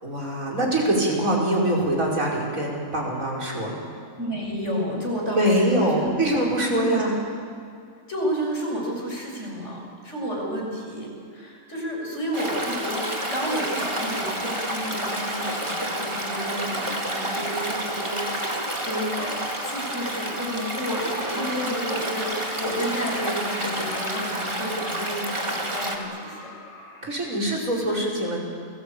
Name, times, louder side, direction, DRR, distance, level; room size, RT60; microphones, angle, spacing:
voice 1, 0.0-3.8 5.3-7.2 27.0-28.4, right 1 dB, 90° right, -1 dB, 5.7 m, -23 dB
voice 2, 4.2-6.1 6.7-7.0 8.1-19.4 19.6-26.4, equal, 60° left, -1 dB, 7.1 m, -31 dB
Stream, 12.3-26.0, right 1 dB, 20° right, 2.6 m, -29 dB
sound 1, 14.8-27.0, left 1 dB, 55° right, 8.2 m, -45 dB
29.0 x 20.5 x 8.7 m, 2.3 s
omnidirectional pair, 1.4 m